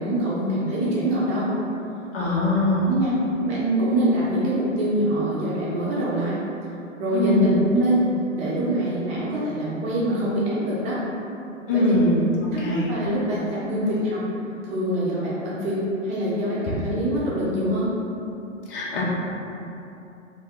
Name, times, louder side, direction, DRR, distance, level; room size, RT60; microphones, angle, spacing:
voice 1, 0.0-1.5 2.2-3.1 3.4-6.3 7.0-8.0 8.3-11.0 11.7-11.9 12.5-14.2 14.6-17.9, right 1 dB, 20° right, -8 dB, 0.8 m, -24 dB
voice 2, 2.1-2.9 7.1-7.5 11.7-12.3 12.6-12.9 18.7-19.0, left 1 dB, 45° left, -5 dB, 1.0 m, -21 dB
4.3 x 2.2 x 3.7 m, 2.9 s
figure-of-eight pair, 120°, 38 cm